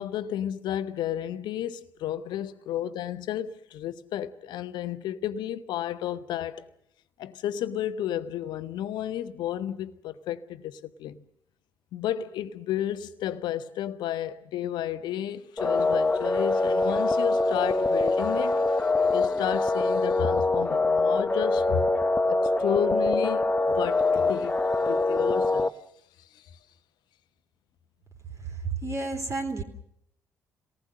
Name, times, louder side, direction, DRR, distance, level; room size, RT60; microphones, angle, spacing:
voice 1, 0.0-6.7 7.2-11.2 11.9-21.9 22.3-25.7 26.3-26.5, left 11 dB, 55° left, 1.1 m, -32 dB
sound 1, 15.6-25.7, left 2 dB, 15° left, 0.9 m, -24 dB
voice 2, 28.4-29.6, right 3 dB, 35° right, 3.7 m, -31 dB
27.5 x 19.0 x 6.6 m
figure-of-eight pair, 45°, 9 cm